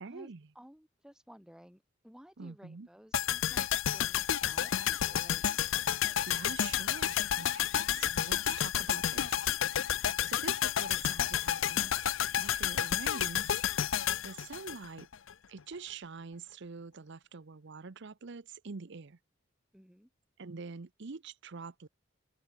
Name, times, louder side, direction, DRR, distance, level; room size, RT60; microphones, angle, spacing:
voice 1, 0.0-0.5 2.4-2.9 6.2-9.5 9.8-12.1 12.3-15.1 15.5-19.2 20.4-21.9, right 4 dB, 65° right, 0.7 m, -46 dB
voice 2, 0.6-5.6 10.1-10.3 19.7-20.1, equal, 5° right, 1.8 m, -56 dB
sound 1, 3.1-15.3 15.6-15.7, left 10 dB, 75° left, 0.6 m, -31 dB
head